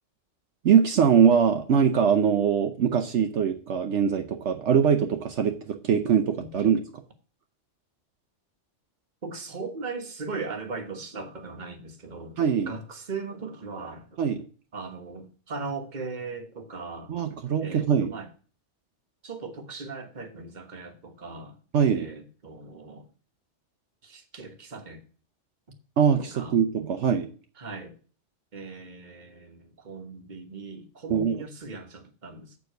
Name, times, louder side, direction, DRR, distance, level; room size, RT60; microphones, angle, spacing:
voice 1, 0.6-6.8 12.4-12.7 14.2-14.4 17.1-18.1 21.7-22.1 26.0-27.3 31.1-31.4, right 7 dB, 75° right, 1.1 m, -22 dB
voice 2, 9.2-12.4 12.7-14.2 14.7-17.1 17.6-18.3 19.2-21.6 21.9-23.1 24.0-25.0 26.2-26.6 27.6-28.0 28.5-32.6, right 4 dB, 40° right, 1.3 m, -38 dB
7.6 x 4.7 x 6.5 m
omnidirectional pair, 1.2 m